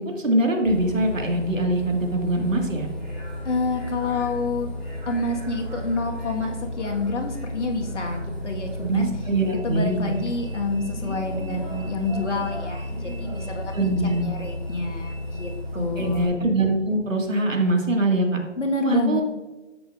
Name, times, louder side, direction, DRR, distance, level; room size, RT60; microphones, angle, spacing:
voice 1, 0.0-2.9 8.8-10.1 13.7-14.3 15.7-18.4 18.8-19.2, right 1 dB, 85° right, 2 dB, 2.1 m, -23 dB
Bus, 0.6-16.3, left 1 dB, ahead, 2.0 m, -33 dB
voice 2, 3.4-4.7 5.1-9.1 9.6-13.9 14.2-15.5 15.7-16.3 18.6-19.2, left 3 dB, 65° left, 2 dB, 1.8 m, -28 dB
10.5 x 8.0 x 2.6 m, 1.2 s
figure-of-eight pair, 165°, 38 cm